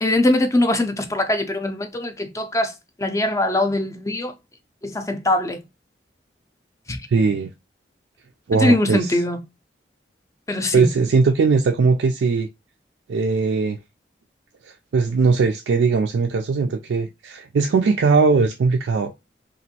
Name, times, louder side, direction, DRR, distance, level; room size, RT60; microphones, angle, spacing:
voice 1, 0.0-2.7 3.0-4.3 4.8-5.6 6.9-7.0 8.5-9.4 10.5-10.9, left 1 dB, 15° left, 0.4 m, -21 dB
voice 2, 7.1-7.5 8.5-9.2 10.7-12.5 13.1-13.8 14.6-19.1, right 4 dB, 80° right, 0.4 m, -19 dB
3.0 x 2.5 x 2.7 m
head